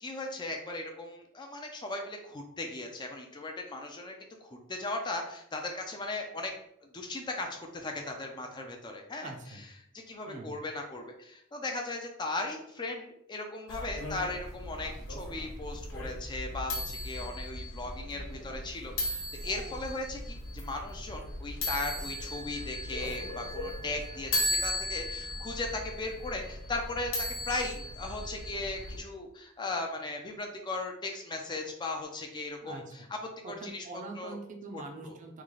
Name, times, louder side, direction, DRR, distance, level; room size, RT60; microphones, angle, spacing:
voice 1, 0.0-4.1 4.4-6.5 6.8-9.3 9.9-33.0 33.5-33.8 34.2-34.4 34.7-35.2, left 2 dB, 20° left, 3 dB, 0.4 m, -37 dB
voice 2, 9.2-9.6 10.3-10.5 32.6-32.9 33.4-35.4, right 3 dB, 35° right, 3 dB, 0.5 m, -43 dB
sound 1, 13.7-29.0, left 1 dB, 75° left, 1.2 m, -37 dB
3.1 x 2.4 x 3.7 m, 0.74 s
head